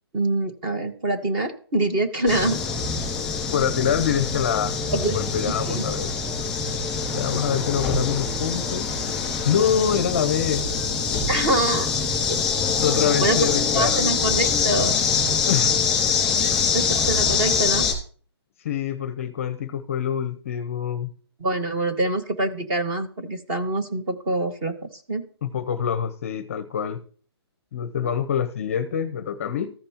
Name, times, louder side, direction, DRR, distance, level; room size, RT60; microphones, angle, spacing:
voice 1, 0.1-2.6 4.9-5.2 5.7-5.8 11.3-11.9 13.2-13.4 13.7-14.9 16.7-17.9 21.4-25.2, right 2 dB, 20° right, 5 dB, 1.2 m, -25 dB
sound 1, 2.3-17.9, left 5 dB, 5° left, 2.2 m, -24 dB
voice 2, 3.5-4.8 5.1-6.1 7.1-8.9 9.4-10.6 12.8-14.0 15.5-15.7 16.3-16.6 18.6-21.1 25.4-27.0 27.7-29.7, left 8 dB, 30° left, 12 dB, 0.7 m, -25 dB
14.5 x 5.3 x 2.9 m, 0.43 s
hypercardioid pair, 165°, 14 cm